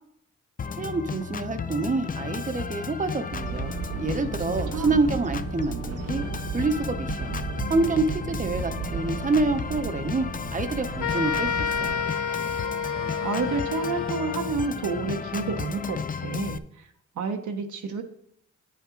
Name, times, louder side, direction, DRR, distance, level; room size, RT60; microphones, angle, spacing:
Organ, 0.6-16.6, left 6 dB, 30° left, 0.4 m, -34 dB
voice 1, 0.8-6.2 6.5-7.3 7.7-10.3 10.5-12.0, right 3 dB, 25° right, 7 dB, 0.8 m, -27 dB
sound 1, 3.3-12.0, right 8 dB, 55° right, 0.5 m, -35 dB
voice 2, 4.5-5.0 13.2-16.9 17.2-18.0, right 4 dB, 85° right, 3 dB, 0.8 m, -30 dB
sound 2, 11.0-14.7, left 7 dB, 85° left, 0.8 m, -29 dB
9.8 x 5.5 x 3.8 m, 0.71 s
wide cardioid pair, 100°, 29 cm